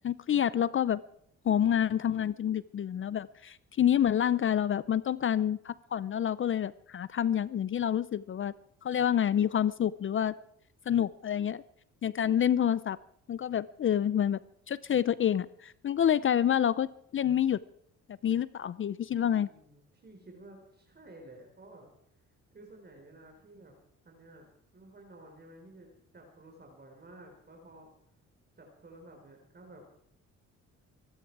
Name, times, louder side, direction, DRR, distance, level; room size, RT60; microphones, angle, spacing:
voice 1, 0.0-1.0 1.4-8.5 8.8-10.3 10.9-11.6 12.0-13.0 13.3-14.4 14.7-17.6 18.2-19.5, left 9 dB, 40° left, 18 dB, 0.5 m, -28 dB
voice 2, 19.1-23.7 24.0-24.5 24.7-27.9 28.6-29.8, right 1 dB, 35° right, 1 dB, 4.2 m, -53 dB
25.0 x 12.0 x 4.7 m, 0.72 s
cardioid pair, 90°, 30 cm